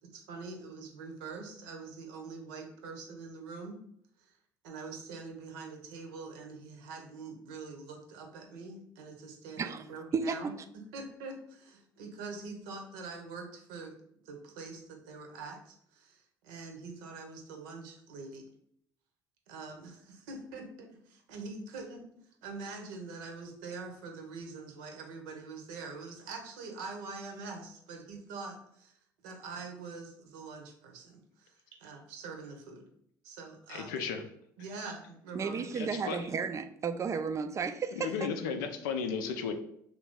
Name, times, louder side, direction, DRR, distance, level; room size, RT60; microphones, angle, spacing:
voice 1, 0.0-3.8 4.2-4.3 4.6-10.5 10.9-13.9 14.2-18.5 19.5-22.1 22.4-28.9 29.2-31.5 31.8-32.9 33.2-33.9 34.6-35.6, right 4 dB, 65° right, 3 dB, 0.7 m, -44 dB
voice 2, 10.1-10.5 35.3-38.3, right 5 dB, 30° right, 9 dB, 0.4 m, -33 dB
voice 3, 33.7-34.2 35.8-36.2 38.0-39.5, left 6 dB, 70° left, 7 dB, 0.4 m, -34 dB
3.1 x 2.5 x 3.6 m, 0.69 s
figure-of-eight pair, 60°, 11 cm